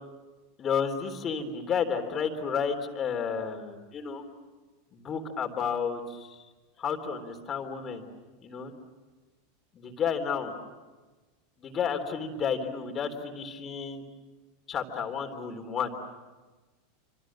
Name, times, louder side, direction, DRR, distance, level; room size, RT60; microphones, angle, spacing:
voice 1, 0.6-4.2 4.9-6.4 6.8-8.0 8.4-8.7 9.7-10.5 11.6-14.0 14.7-15.9, left 6 dB, 30° left, 6 dB, 3.5 m, -31 dB
27.5 x 26.5 x 7.5 m, 1.3 s
figure-of-eight pair, 85°, 0 cm